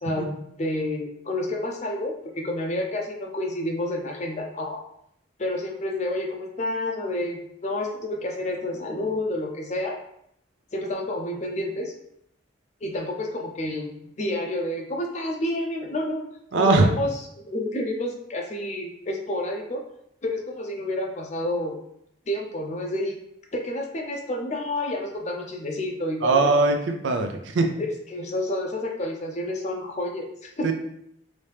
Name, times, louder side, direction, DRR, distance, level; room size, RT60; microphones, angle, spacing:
voice 1, 0.0-4.8 5.4-10.0 10.7-11.9 12.8-13.9 14.2-16.2 16.5-19.8 20.2-21.8 22.3-23.2 23.5-26.5 27.8-30.7, left 1 dB, 35° left, 2 dB, 0.5 m, -29 dB
voice 2, 16.5-16.9 26.2-27.7 30.6-30.7, right 3 dB, 70° right, 4 dB, 0.5 m, -20 dB
3.1 x 2.7 x 3.3 m, 0.74 s
head